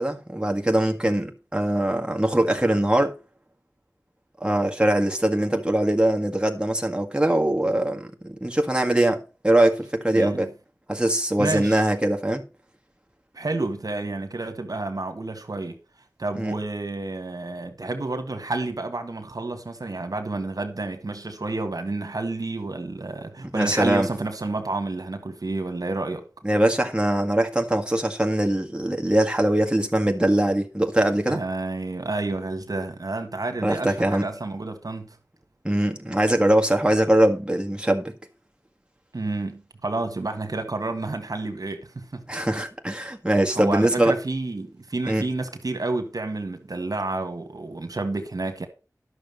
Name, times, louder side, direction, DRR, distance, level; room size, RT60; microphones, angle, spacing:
voice 1, 0.0-3.1 4.4-10.5 10.9-12.4 16.4-16.5 23.4-24.1 26.4-31.4 33.6-34.3 35.6-38.1 42.3-44.2 45.1-45.2, right 1 dB, 15° right, 1.8 m, -22 dB
voice 2, 10.1-10.5 11.4-11.8 13.3-15.8 16.2-26.2 31.3-35.2 39.1-42.5 43.5-48.7, right 2 dB, 70° right, 1.7 m, -30 dB
11.5 x 6.5 x 5.4 m
wide cardioid pair, 50°, 7 cm